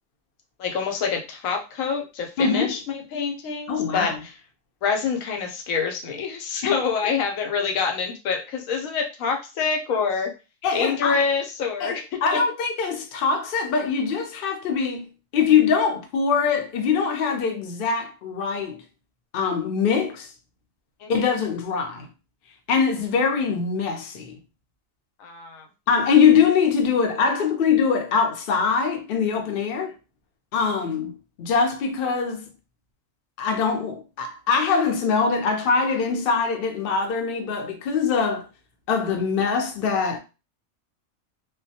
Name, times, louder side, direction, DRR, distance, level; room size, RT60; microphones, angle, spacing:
voice 1, 0.6-4.3 4.8-10.3 10.7-12.4 21.0-21.2 25.2-25.7, left 5 dB, 90° left, 1.0 m, -26 dB
voice 2, 2.4-2.7 3.7-4.1 6.6-6.8 10.6-11.2 11.8-11.9 12.2-18.8 19.3-20.3 21.1-22.1 22.7-24.3 25.9-29.9 30.5-32.5 33.4-38.4 38.9-40.2, left 6 dB, 55° left, 0.6 m, -23 dB
2.2 x 2.2 x 2.7 m
omnidirectional pair, 1.4 m